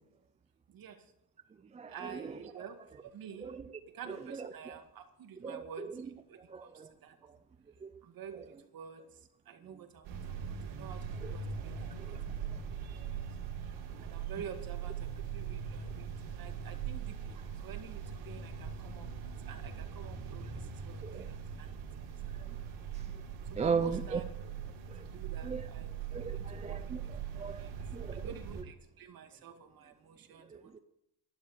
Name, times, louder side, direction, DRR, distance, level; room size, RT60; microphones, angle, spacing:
voice 1, 0.7-1.1 1.9-3.5 3.9-6.4 7.0-7.2 8.0-12.6 13.1-13.3 13.6-19.1 19.5-21.8 22.3-22.4 23.5-24.2 25.0-25.9 26.3-26.8 27.6-27.7 28.2-30.8, right 8 dB, 45° right, 6 dB, 2.1 m, -49 dB
voice 2, 1.7-2.6 3.4-3.7 4.3-4.8 5.4-5.9 6.5-6.9 7.8-7.9 9.7-9.8 11.2-11.3 12.1-12.2 21.0-21.3 22.9-23.0 23.6-24.2 24.9-25.0 25.4-25.7 26.1-28.3 30.5-30.6, right 5 dB, 15° right, 9 dB, 0.4 m, -38 dB
sound 1, 10.0-28.6, right 7 dB, 70° right, 3.6 m, -41 dB
12.0 x 12.0 x 6.9 m, 0.82 s
cardioid pair, 135°, 50 cm